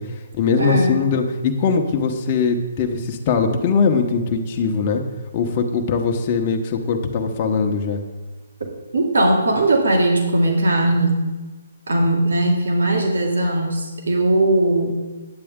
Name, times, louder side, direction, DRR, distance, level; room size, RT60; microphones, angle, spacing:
voice 1, 0.0-5.0 5.3-8.0, left 5 dB, 35° left, 3 dB, 0.9 m, -21 dB
voice 2, 0.6-1.0 8.9-11.2 11.9-14.9, right 1 dB, 80° right, 0 dB, 2.0 m, -19 dB
9.7 x 7.6 x 3.6 m, 1.2 s
hypercardioid pair, 150°, 0 cm